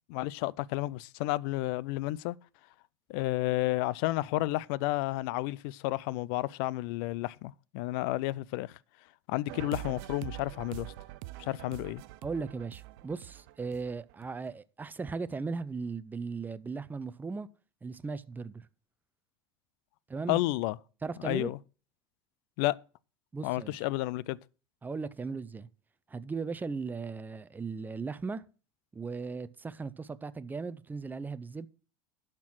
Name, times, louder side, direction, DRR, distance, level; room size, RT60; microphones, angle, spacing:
voice 1, 0.1-2.4 3.1-8.7 9.3-10.9 11.4-12.0 20.3-20.8 21.2-21.6 22.6-22.8 23.4-24.4, left 18 dB, 65° left, 0.4 m, -31 dB
sound 1, 9.5-14.5, right 18 dB, 65° right, 0.5 m, -44 dB
voice 2, 12.2-17.5 17.8-18.6 20.1-20.4 21.0-21.5 23.3-23.8 24.8-25.7 26.1-28.4 28.9-31.7, right 4 dB, 15° right, 0.6 m, -37 dB
11.5 x 4.5 x 6.1 m
hypercardioid pair, 95°, 13 cm